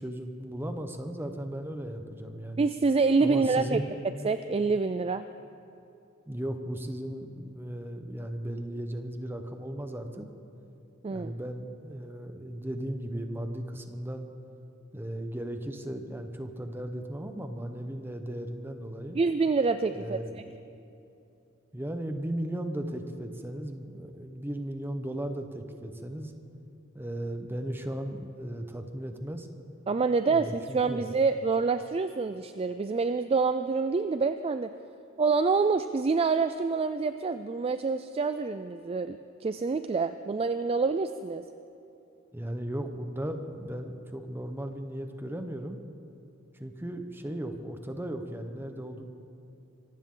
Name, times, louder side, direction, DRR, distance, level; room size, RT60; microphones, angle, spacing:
voice 1, 0.0-2.7 3.2-4.2 6.3-10.3 11.1-14.3 14.9-19.2 19.9-20.6 21.7-26.3 26.9-29.5 30.2-31.1 42.3-45.8 46.5-49.0, right 1 dB, 10° right, 6 dB, 1.0 m, -36 dB
voice 2, 2.6-3.8 4.2-5.3 11.0-11.3 19.1-20.2 29.9-34.7 35.2-41.4, right 4 dB, 30° right, 10 dB, 0.3 m, -27 dB
25.0 x 15.0 x 3.9 m, 2.8 s
head